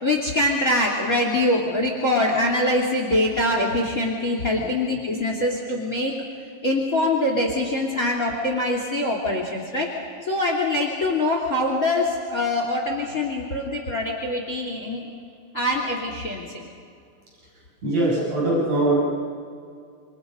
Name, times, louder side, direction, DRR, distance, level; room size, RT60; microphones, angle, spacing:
voice 1, 0.0-6.1 6.6-9.9 10.2-15.1 15.5-16.6, left 1 dB, 25° left, 2 dB, 2.7 m, -24 dB
voice 2, 17.8-19.0, right 2 dB, 40° right, -5 dB, 7.5 m, -21 dB
28.0 x 26.0 x 5.3 m, 2.3 s
omnidirectional pair, 4.7 m